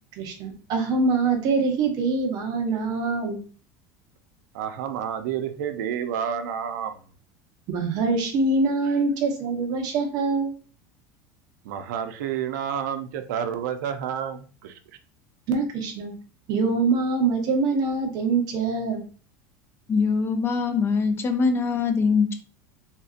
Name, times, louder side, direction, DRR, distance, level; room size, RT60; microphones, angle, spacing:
voice 1, 0.2-3.4 7.7-10.5 15.5-16.1 16.5-19.0, right 3 dB, 45° right, 4 dB, 0.9 m, -24 dB
voice 2, 4.5-6.9 8.9-9.0 11.6-14.8, right 8 dB, 90° right, 8 dB, 0.5 m, -30 dB
voice 3, 19.9-22.3, left 5 dB, 25° left, 6 dB, 0.5 m, -22 dB
3.6 x 2.7 x 2.4 m, 0.39 s
supercardioid pair, 140°, 9 cm